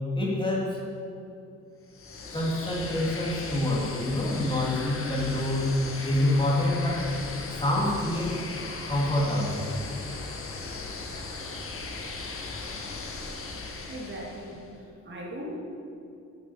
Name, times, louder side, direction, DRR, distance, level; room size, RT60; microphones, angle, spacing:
voice 1, 0.1-0.8 2.3-5.8 6.0-7.1 7.5-8.4 8.9-9.7, left 1 dB, 15° left, -4 dB, 3.2 m, -26 dB
sound 1, 1.9-14.7, left 3 dB, 45° left, 1.7 m, -37 dB
voice 2, 13.9-15.5, equal, 40° right, -3 dB, 2.8 m, -39 dB
9.5 x 8.3 x 7.5 m, 2.6 s
cardioid pair, 90°, 30 cm